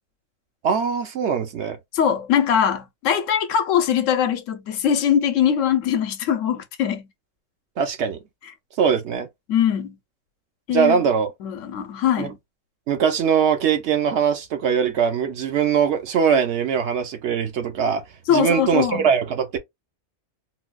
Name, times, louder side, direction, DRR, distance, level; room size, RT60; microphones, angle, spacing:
voice 1, 0.6-1.8 7.8-8.2 8.8-9.3 10.7-11.3 12.2-12.3 12.9-18.0 18.3-19.6, right 7 dB, 65° right, 0.9 m, -21 dB
voice 2, 1.9-7.1 9.5-10.0 10.7-11.0 11.4-12.4 18.3-19.1, left 9 dB, 75° left, 1.0 m, -21 dB
3.8 x 2.2 x 2.3 m
omnidirectional pair, 1.4 m